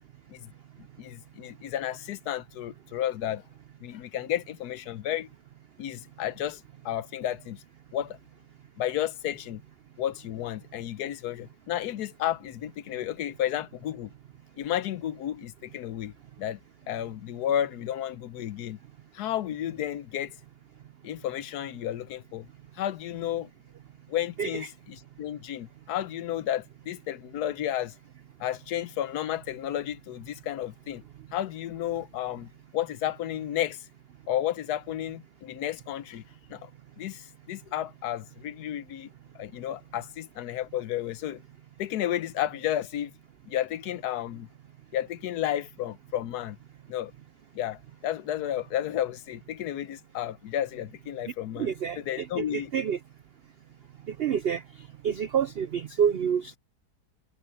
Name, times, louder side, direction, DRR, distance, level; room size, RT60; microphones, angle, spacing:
voice 1, 1.0-3.4 3.8-5.3 5.8-7.6 7.9-8.2 8.8-9.6 10.0-14.1 14.6-16.1 16.4-16.6 16.9-18.8 19.1-20.4 21.0-22.5 22.8-23.5 24.1-27.9 28.4-31.0 31.3-33.9 34.3-36.2 36.5-36.7 37.0-39.1 39.3-41.4 41.8-43.1 43.5-44.5 44.9-46.6 46.9-47.1 47.5-51.7 52.0-52.7, left 11 dB, 75° left, 1.2 m, -32 dB
voice 2, 51.6-53.0 54.1-54.6 55.0-56.6, right 8 dB, 85° right, 0.5 m, -28 dB
omnidirectional pair, 1.8 m